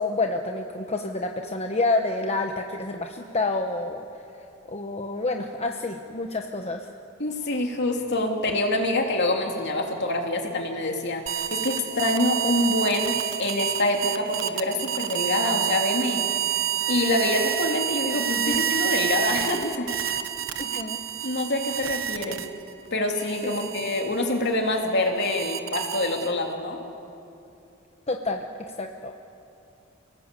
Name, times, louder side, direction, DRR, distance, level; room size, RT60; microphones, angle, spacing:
voice 1, 0.0-4.1 4.7-6.9 18.5-18.6 20.6-21.0 22.3-22.4 23.4-23.5 28.1-29.1, left 2 dB, 30° left, 4 dB, 1.1 m, -28 dB
voice 2, 7.2-11.2 11.5-16.2 16.9-20.0 21.2-22.4 22.9-26.8, left 2 dB, 60° left, 2 dB, 2.9 m, -26 dB
sound 1, 11.3-22.7 23.2-26.5, right 11 dB, 70° right, 1.2 m, -29 dB
29.0 x 19.0 x 8.3 m, 2.8 s
head